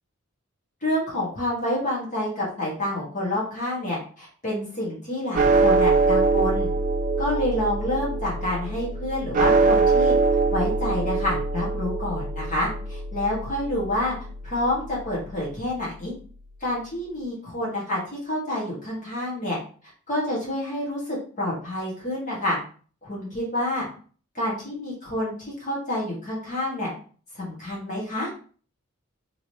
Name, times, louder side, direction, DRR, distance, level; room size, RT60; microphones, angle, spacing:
voice 1, 0.8-6.7 7.2-10.1 10.5-14.2 14.4-16.1 16.6-19.6 20.1-22.6 23.0-23.9 24.4-26.9 27.4-28.3, left 1 dB, 40° left, -5 dB, 1.7 m, -28 dB
sound 1, 5.3-15.8, right 3 dB, 40° right, 0.4 m, -23 dB
3.7 x 3.2 x 3.0 m, 0.42 s
head